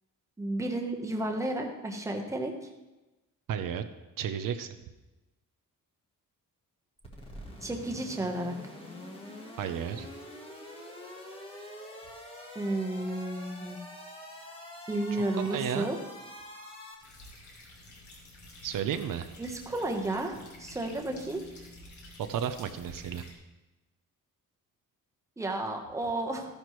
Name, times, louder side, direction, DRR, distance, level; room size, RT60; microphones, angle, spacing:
voice 1, 0.4-2.5 7.6-8.5 12.5-13.8 14.9-16.0 19.4-20.3 20.6-21.4 25.4-26.5, right 2 dB, 10° right, 1 dB, 1.1 m, -32 dB
voice 2, 3.5-3.8 4.2-4.7 9.6-10.1 15.4-15.9 18.6-19.3 22.3-23.2, right 8 dB, 75° right, 8 dB, 0.7 m, -32 dB
sound 1, 7.0-16.9, left 1 dB, 15° left, 1.5 m, -45 dB
sound 2, 17.0-23.3, left 2 dB, 60° left, 2.9 m, -50 dB
14.0 x 10.5 x 3.1 m, 1.1 s
wide cardioid pair, 175°, 34 cm